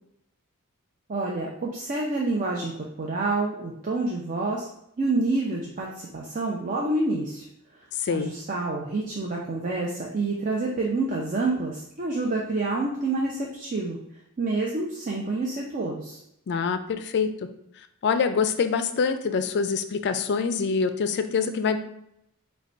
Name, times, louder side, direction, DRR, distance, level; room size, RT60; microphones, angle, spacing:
voice 1, 1.1-4.7 5.0-7.5 8.1-14.0 14.4-16.2, right 2 dB, 40° right, -1 dB, 0.5 m, -28 dB
voice 2, 8.0-8.3 16.5-17.3 18.0-21.8, left 5 dB, 50° left, 9 dB, 0.4 m, -25 dB
5.0 x 2.3 x 4.4 m, 0.76 s
head